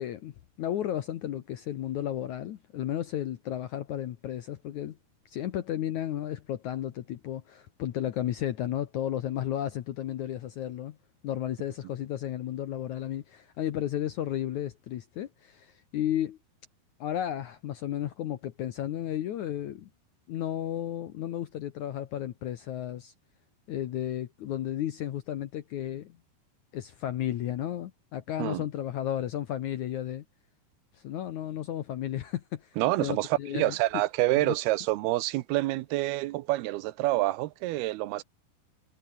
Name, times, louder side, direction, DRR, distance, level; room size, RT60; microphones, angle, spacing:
voice 1, 0.0-5.0 5.3-11.0 11.2-16.4 17.0-19.9 20.3-23.1 23.7-26.2 26.7-30.3 30.9-33.8 34.4-34.6, left 11 dB, 75° left, 1.8 m, -33 dB
voice 2, 32.8-38.2, right 17 dB, 75° right, 2.5 m, -27 dB
omnidirectional pair, 5.0 m